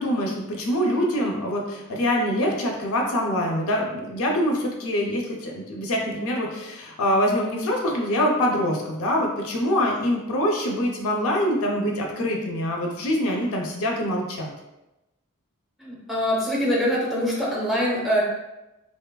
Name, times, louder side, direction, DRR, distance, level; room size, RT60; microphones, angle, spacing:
voice 1, 0.0-14.5, equal, 65° left, 0 dB, 0.4 m, -24 dB
voice 2, 15.8-18.2, equal, ahead, -5 dB, 0.5 m, -24 dB
2.9 x 2.2 x 2.2 m, 0.98 s
head